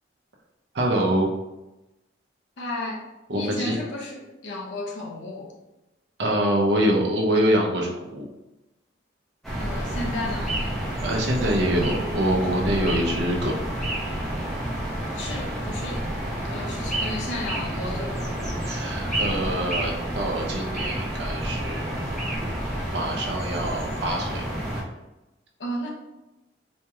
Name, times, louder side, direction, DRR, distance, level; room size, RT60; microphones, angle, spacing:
voice 1, 0.7-1.3 3.3-3.8 6.2-8.2 11.0-13.6 18.6-22.1 22.9-24.5, right 1 dB, 65° right, 0 dB, 0.7 m, -25 dB
voice 2, 2.6-3.1 3.3-5.5 9.6-10.6 15.1-16.1 16.5-18.3 25.6-25.9, left 1 dB, 75° left, 0 dB, 0.8 m, -33 dB
sound 1, 9.4-24.8, right 1 dB, ahead, 0.9 m, -29 dB
4.4 x 2.9 x 2.3 m, 0.99 s
head